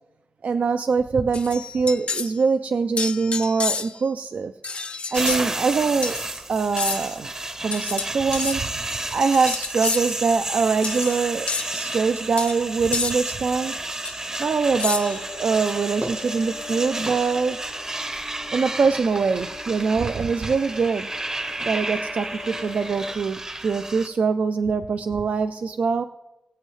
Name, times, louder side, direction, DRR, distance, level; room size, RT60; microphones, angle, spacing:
voice 1, 0.4-4.5 5.1-6.2 6.5-7.3 7.6-8.7 9.1-13.7 14.4-17.6 18.5-21.1 21.6-26.0, right 5 dB, 60° right, 9 dB, 0.4 m, -23 dB
sound 1, 1.3-2.4 3.0-4.1 4.6-5.4 6.0-6.2 6.8-7.2 7.7-8.6 9.3-10.1 10.8-11.2 11.5-11.7 12.4-12.5 12.9-13.2 14.0-14.1 14.8-15.3, left 4 dB, 45° left, 0.7 m, -29 dB
sound 2, 5.1-24.1, right 2 dB, 20° right, 0.7 m, -31 dB
sound 3, 14.7-23.1, left 4 dB, 65° left, 0.9 m, -41 dB
22.5 x 8.4 x 3.2 m, 0.99 s
wide cardioid pair, 175°, 3 cm